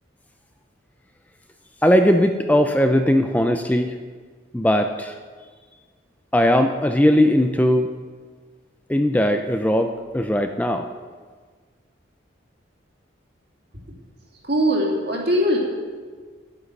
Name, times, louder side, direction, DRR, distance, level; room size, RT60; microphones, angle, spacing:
voice 1, 1.8-3.9 4.5-5.2 6.3-7.9 8.9-10.9, equal, 10° left, 6 dB, 0.4 m, -19 dB
voice 2, 14.4-15.6, equal, 55° right, -2 dB, 2.4 m, -20 dB
11.0 x 9.4 x 6.5 m, 1.5 s
head